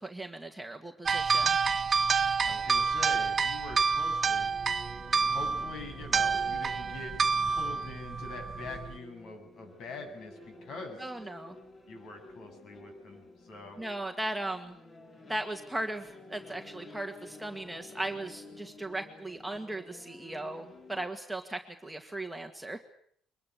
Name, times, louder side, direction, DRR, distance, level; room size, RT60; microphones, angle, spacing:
voice 1, 0.0-1.6 11.0-11.5 13.8-14.8 15.3-22.8, right 1 dB, 5° right, 4 dB, 2.0 m, -37 dB
sound 1, 1.1-9.0, right 5 dB, 30° right, 1.0 m, -28 dB
voice 2, 2.2-4.5 5.2-7.2 7.5-11.1 11.9-13.8, left 3 dB, 55° left, 5 dB, 8.0 m, -44 dB
sound 2, 4.0-21.1, left 2 dB, 25° left, 4.7 m, -52 dB
23.5 x 21.5 x 8.5 m, 0.64 s
cardioid pair, 140°, 0 cm